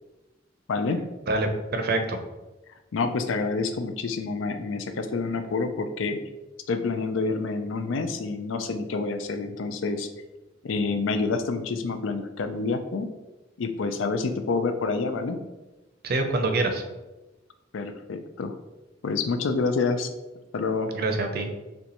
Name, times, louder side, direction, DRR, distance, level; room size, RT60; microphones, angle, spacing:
voice 1, 1.3-2.2 16.0-16.8 20.9-21.5, right 2 dB, 55° right, 6 dB, 0.6 m, -25 dB
voice 2, 2.9-6.2 6.7-10.1 10.6-13.1 13.6-15.4 17.7-18.6 19.0-20.1 20.5-20.9, left 4 dB, 80° left, 8 dB, 0.4 m, -28 dB
6.6 x 2.3 x 2.9 m, 1.1 s
head